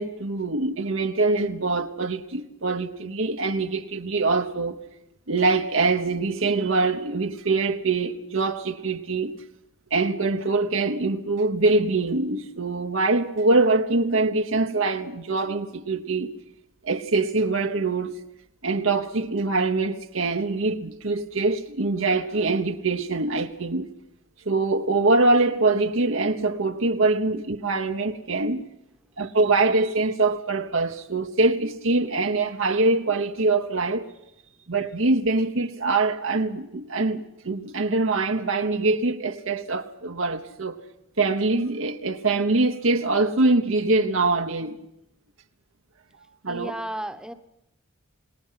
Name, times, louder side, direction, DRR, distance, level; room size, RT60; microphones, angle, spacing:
voice 1, 0.0-4.8 5.3-9.3 9.9-16.3 16.8-18.1 18.6-23.9 24.5-28.6 29.2-34.1 34.7-40.8 41.2-44.8 46.4-46.7, right 3 dB, 60° right, 1.1 m, -24 dB
voice 2, 46.5-47.3, right 1 dB, 5° right, 1.2 m, -33 dB
29.0 x 19.5 x 5.8 m
head